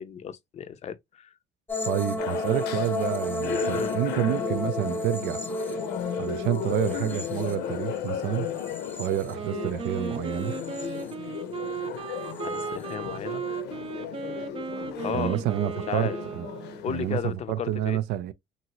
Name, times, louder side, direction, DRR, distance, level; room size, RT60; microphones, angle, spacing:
voice 1, 0.0-1.3 3.7-3.9 12.4-13.4 15.0-15.4 15.9-16.2 16.8-18.0, left 9 dB, 40° left, 0.5 m, -34 dB
sound 1, 1.7-9.9 10.3-11.1 12.4-12.7, left 2 dB, 10° left, 0.8 m, -33 dB
voice 2, 1.8-5.4 6.2-8.5 9.0-10.5 15.1-16.5 16.9-18.3, right 13 dB, 85° right, 0.4 m, -29 dB
sound 2, 2.2-17.2, left 9 dB, 80° left, 0.6 m, -35 dB
Wind instrument woodwind instrument, 9.3-17.0, right 6 dB, 35° right, 0.5 m, -36 dB
2.9 x 2.6 x 2.9 m
cardioid pair, 110°, 17 cm